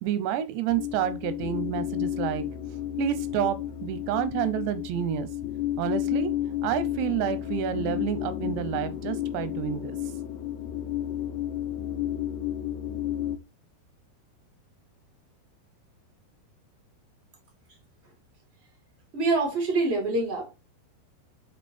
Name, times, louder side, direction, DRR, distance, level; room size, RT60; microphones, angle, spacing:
voice 1, 0.0-2.4 3.0-5.3 5.8-6.3 6.6-10.0, right 10 dB, 90° right, 3.0 m, -29 dB
sound 1, 0.7-13.4, left 11 dB, 75° left, 2.3 m, -32 dB
voice 2, 19.1-20.5, right 3 dB, 30° right, 1.2 m, -25 dB
7.5 x 3.0 x 4.3 m
omnidirectional pair, 4.8 m